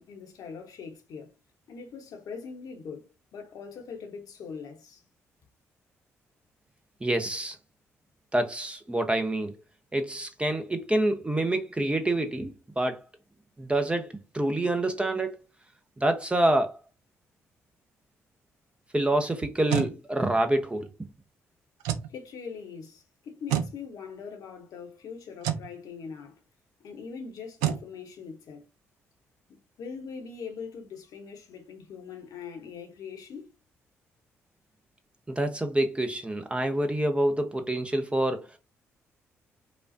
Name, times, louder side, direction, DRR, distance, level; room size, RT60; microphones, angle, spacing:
voice 1, 0.0-1.3 1.7-5.0 22.1-26.4 26.8-28.6 29.5-33.5, left 6 dB, 60° left, 1.0 m, -42 dB
voice 2, 7.0-7.6 8.3-9.6 9.9-13.0 13.6-15.4 16.0-16.8 18.9-20.9 35.3-38.6, right 1 dB, 15° right, 0.8 m, -27 dB
sound 1, 19.4-20.0 21.8-22.1 23.5-23.8 25.4-25.7 27.6-27.9, right 10 dB, 70° right, 0.4 m, -28 dB
5.0 x 2.4 x 2.6 m
figure-of-eight pair, 40°, 7 cm